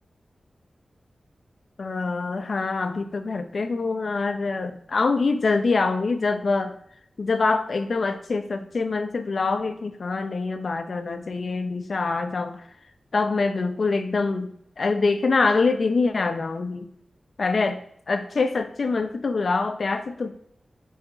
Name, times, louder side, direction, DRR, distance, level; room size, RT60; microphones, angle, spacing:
voice 1, 1.8-6.8 7.2-12.7 13.1-16.9 17.4-20.3, left 3 dB, 60° left, 8 dB, 0.7 m, -25 dB
5.8 x 4.2 x 4.9 m, 0.69 s
wide cardioid pair, 90°, 0 cm